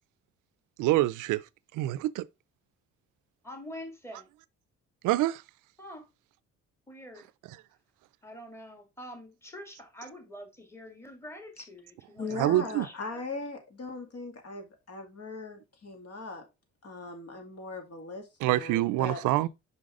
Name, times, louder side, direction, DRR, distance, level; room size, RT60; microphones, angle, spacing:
voice 1, 0.8-2.3 5.0-5.4 7.5-7.6 12.3-12.9 18.4-19.5, right 16 dB, 90° right, 0.5 m, -26 dB
voice 2, 3.4-4.3 5.8-6.1 6.9-7.3 8.2-13.2, equal, 10° left, 2.1 m, -46 dB
voice 3, 12.2-16.4 16.8-19.2, left 3 dB, 55° left, 2.3 m, -39 dB
5.6 x 5.4 x 3.6 m
cardioid pair, 90°, 30 cm